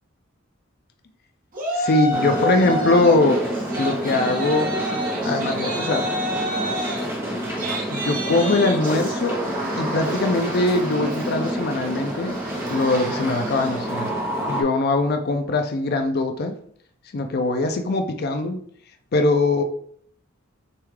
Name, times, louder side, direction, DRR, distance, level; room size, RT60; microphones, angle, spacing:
Yell, 1.5-3.2 3.5-14.0, equal, 45° right, 1.1 m, -30 dB
voice 1, 1.7-3.4 3.7-4.7 5.2-6.1 7.9-9.4 9.7-12.4 12.7-14.1 14.4-16.6 17.1-18.6 19.1-19.6, left 2 dB, 50° left, 6 dB, 0.5 m, -21 dB
sound 1, 2.1-14.6, equal, 15° right, 0.8 m, -28 dB
6.6 x 2.4 x 3.3 m, 0.62 s
head